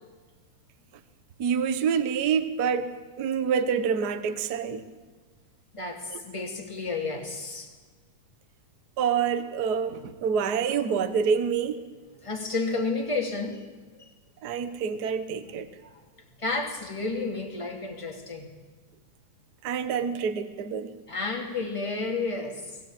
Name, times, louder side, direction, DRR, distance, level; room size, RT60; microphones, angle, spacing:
voice 1, 1.4-2.9 3.2-4.8 6.1-6.2 9.0-11.8 14.4-15.7 19.6-20.9, right 6 dB, 60° right, 10 dB, 1.0 m, -27 dB
voice 2, 5.7-7.7 12.2-13.7 13.9-14.1 15.8-16.0 16.4-18.5 21.1-22.8, left 3 dB, 10° left, 1 dB, 2.3 m, -31 dB
20.5 x 17.0 x 8.9 m, 1.3 s
omnidirectional pair, 3.6 m